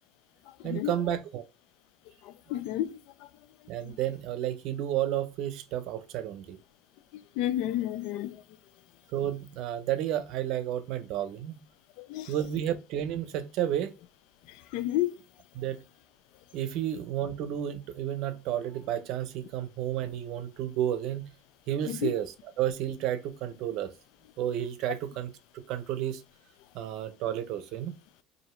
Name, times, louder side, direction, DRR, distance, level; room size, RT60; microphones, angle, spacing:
voice 1, 0.6-1.4 3.7-6.6 9.1-11.6 12.3-13.9 15.5-15.8 16.5-21.3 21.7-23.9 24.4-25.3 25.7-26.2 26.7-27.9, right 11 dB, 70° right, 0.6 m, -31 dB
voice 2, 2.2-3.0 3.8-4.0 7.1-8.4 12.0-12.3 14.5-15.1 21.8-22.1, left 13 dB, 75° left, 0.4 m, -31 dB
2.8 x 2.7 x 4.3 m
supercardioid pair, 110°, 0 cm